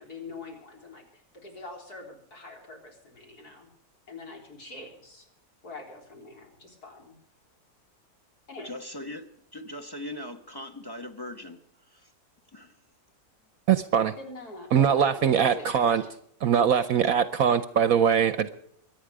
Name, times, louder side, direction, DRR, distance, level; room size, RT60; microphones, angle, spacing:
voice 1, 0.0-3.7 4.1-5.3 5.6-7.2 8.5-8.7 14.2-16.0, left 3 dB, 70° left, 1 dB, 4.4 m, -43 dB
voice 2, 8.6-9.3 9.5-11.6 11.9-12.1 12.5-12.8 15.4-16.0 16.8-16.9, left 1 dB, 15° left, 7 dB, 1.2 m, -40 dB
voice 3, 13.7-14.1 14.7-16.0 16.4-18.5, right 8 dB, 65° right, 12 dB, 1.1 m, -22 dB
24.0 x 9.4 x 4.9 m, 0.72 s
omnidirectional pair, 1.7 m